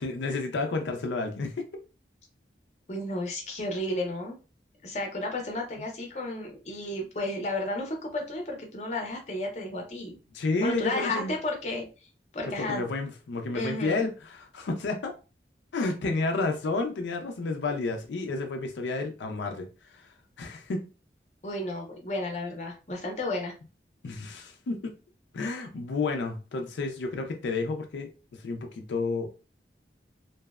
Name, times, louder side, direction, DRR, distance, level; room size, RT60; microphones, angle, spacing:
voice 1, 0.0-1.7 10.3-11.3 12.6-15.1 15.7-20.8 24.0-24.9 25.3-29.3, left 3 dB, 85° left, 0.4 m, -31 dB
voice 2, 2.9-4.4 4.8-10.2 10.6-11.9 12.3-12.9 13.5-14.0 21.4-23.5, left 1 dB, 40° left, 0.6 m, -32 dB
2.6 x 2.1 x 2.3 m
head